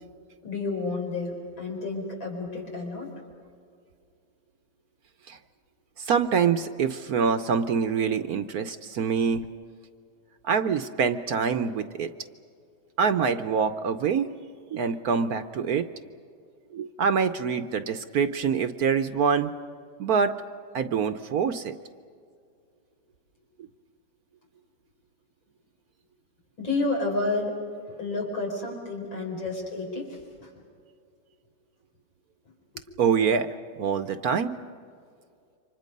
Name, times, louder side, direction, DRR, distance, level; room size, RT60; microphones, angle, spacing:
voice 1, 0.4-3.1 26.6-27.5 28.0-30.5 33.3-33.4, left 3 dB, 85° left, 0 dB, 5.7 m, -30 dB
voice 2, 6.0-9.5 10.4-12.1 13.0-14.3 14.7-15.9 16.7-19.5 20.0-20.3 20.7-21.7 33.0-33.5 33.8-34.5, right 6 dB, 60° right, 10 dB, 1.1 m, -25 dB
29.5 x 25.5 x 5.3 m, 2.3 s
omnidirectional pair, 2.1 m